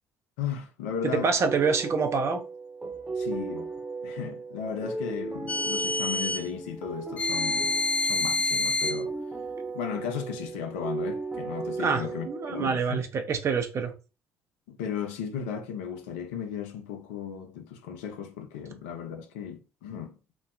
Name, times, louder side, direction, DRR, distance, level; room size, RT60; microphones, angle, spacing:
voice 1, 0.4-1.3 3.2-3.7 4.0-9.1 9.7-13.0 14.7-20.2, left 8 dB, 70° left, 0.5 m, -36 dB
voice 2, 1.0-2.4 11.8-13.9, right 5 dB, 40° right, 0.6 m, -26 dB
sound 1, 1.4-13.1, right 3 dB, 10° right, 0.8 m, -36 dB
sound 2, 5.5-6.5 7.2-9.0, left 3 dB, 20° left, 0.5 m, -27 dB
3.1 x 2.0 x 2.5 m
figure-of-eight pair, 50°, 7 cm